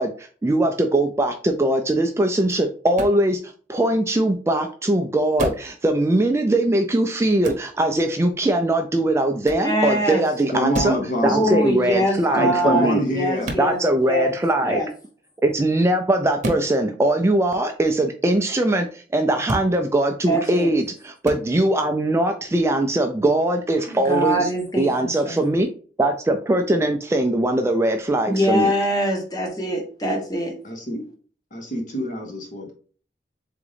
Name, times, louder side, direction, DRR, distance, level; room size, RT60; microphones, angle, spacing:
voice 1, 0.0-3.4 3.7-13.0 13.6-14.8 15.4-24.5 24.8-25.7 26.0-28.7, right 1 dB, 15° right, 6 dB, 0.3 m, -21 dB
sound 1, 2.9-3.2 5.4-5.7 7.4-7.7 9.4-9.7 10.7-11.0 13.4-13.7 16.4-16.7 19.4-19.7 21.2-21.4, right 1 dB, 45° right, 0.9 m, -28 dB
voice 2, 9.6-10.2 11.2-13.8 14.0-14.3 14.6-14.9 20.3-20.7 23.9-25.4 28.3-30.6, equal, 20° left, 1 dB, 1.1 m, -23 dB
voice 3, 10.5-11.6 12.3-13.5 30.0-30.1 30.6-31.0 31.5-32.7, equal, 45° left, 1 dB, 1.3 m, -26 dB
3.8 x 3.5 x 3.4 m, 0.41 s
head